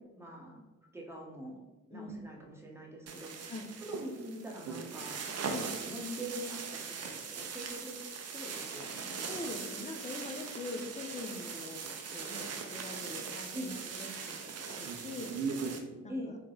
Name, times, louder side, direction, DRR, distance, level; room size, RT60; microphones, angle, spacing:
voice 1, 0.2-0.6 0.9-1.6 1.9-3.5 3.8-5.2 5.7-9.1 13.5-13.7 16.1-16.4, equal, 5° right, -1 dB, 1.0 m, -43 dB
sound 1, 3.1-15.8, right 5 dB, 40° right, 0.6 m, -40 dB
voice 2, 9.3-15.3 16.0-16.1, left 2 dB, 20° left, 4 dB, 0.7 m, -43 dB
3.8 x 2.3 x 3.9 m, 1.1 s
hypercardioid pair, 45°, 37 cm